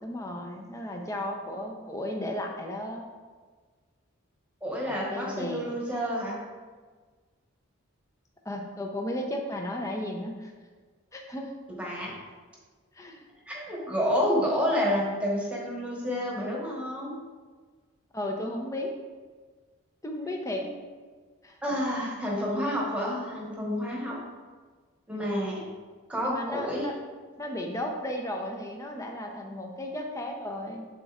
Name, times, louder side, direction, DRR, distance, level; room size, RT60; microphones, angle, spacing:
voice 1, 0.0-3.1 4.8-5.7 8.4-10.5 11.1-11.5 12.9-13.3 18.1-18.9 20.0-20.7 21.4-21.6 26.2-26.9 27.4-30.9, left 1 dB, 15° left, 2 dB, 0.6 m, -34 dB
voice 2, 4.6-6.4 11.8-12.1 13.5-17.1 20.6-20.8 21.6-24.2 25.1-25.6 26.1-26.9, equal, 5° right, -4 dB, 1.2 m, -29 dB
10.0 x 4.1 x 2.5 m, 1.4 s
head